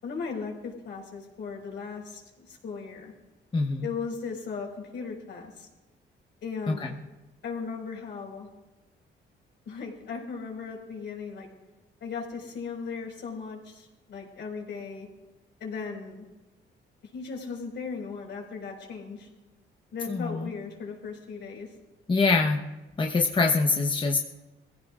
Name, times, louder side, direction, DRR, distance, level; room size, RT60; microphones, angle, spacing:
voice 1, 0.0-3.1 3.8-5.7 6.4-7.0 7.4-8.5 9.6-11.5 12.0-15.1 15.6-16.3 17.0-19.3 19.9-21.7, left 5 dB, 65° left, -1 dB, 5.0 m, -37 dB
voice 2, 3.5-3.9 6.7-6.9 20.1-20.5 22.1-22.6 23.0-24.2, left 3 dB, 25° left, 2 dB, 1.1 m, -24 dB
21.5 x 15.5 x 2.5 m, 1.1 s
cardioid pair, 90°, 20 cm